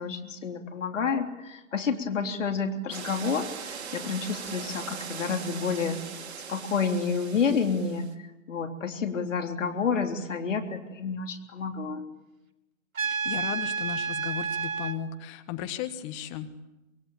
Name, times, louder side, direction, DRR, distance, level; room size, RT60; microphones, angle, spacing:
voice 1, 0.0-6.0 6.5-12.0, left 5 dB, 60° left, 5 dB, 3.6 m, -29 dB
sound 1, 2.9-8.1, right 6 dB, 50° right, 3.0 m, -40 dB
voice 2, 13.0-16.5, left 10 dB, 20° left, 9 dB, 1.5 m, -35 dB
Trumpet, 13.0-15.0, right 5 dB, 70° right, 2.9 m, -30 dB
26.5 x 22.5 x 8.9 m, 0.98 s
figure-of-eight pair, 130°, 43 cm